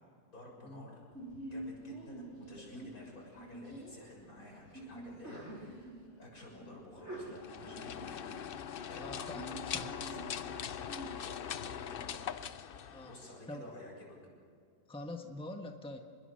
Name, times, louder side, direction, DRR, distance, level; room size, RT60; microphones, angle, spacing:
voice 1, 0.3-1.0 1.4-8.3 8.8-9.4 9.8-12.3 13.0-14.2, left 1 dB, 80° left, -2 dB, 7.3 m, -52 dB
Sneeze, 1.1-11.1, right 1 dB, 50° right, 6.6 m, -48 dB
sound 1, 7.3-13.5, left 8 dB, 50° left, 0.7 m, -41 dB
voice 2, 8.9-9.9 12.9-13.1 13.5-13.6 14.9-16.0, left 1 dB, 5° left, 4 dB, 1.4 m, -44 dB
27.0 x 21.5 x 6.6 m, 2.2 s
omnidirectional pair, 1.5 m